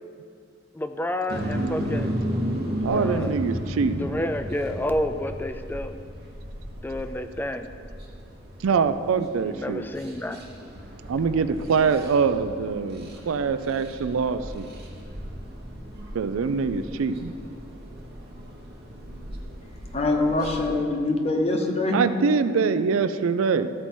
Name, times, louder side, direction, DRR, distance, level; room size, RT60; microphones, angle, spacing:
voice 1, 0.7-2.1 2.9-3.4 4.0-5.9 6.8-7.7 9.4-10.4, left 1 dB, 10° left, 8 dB, 0.3 m, -30 dB
sound 1, 1.3-20.8, equal, 55° right, 1.0 m, -35 dB
voice 2, 2.8-4.2 8.6-9.9 11.1-14.7 16.1-17.3 21.9-23.7, right 5 dB, 85° right, 12 dB, 0.4 m, -24 dB
voice 3, 19.9-22.0, left 2 dB, 30° left, 2 dB, 0.8 m, -24 dB
13.5 x 4.6 x 4.3 m, 2.3 s
head